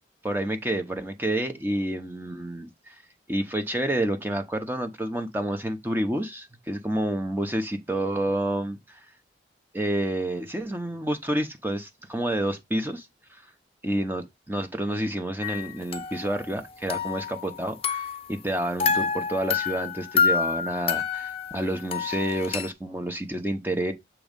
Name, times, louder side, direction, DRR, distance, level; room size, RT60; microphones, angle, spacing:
voice 1, 0.2-3.0 3.3-9.1 9.7-13.4 13.8-14.2 14.5-23.9, right 1 dB, 10° right, 0.7 m, -29 dB
sound 1, 15.4-16.6 16.9-18.3 18.8-22.7, left 6 dB, 35° left, 0.6 m, -28 dB
7.1 x 3.0 x 5.2 m
head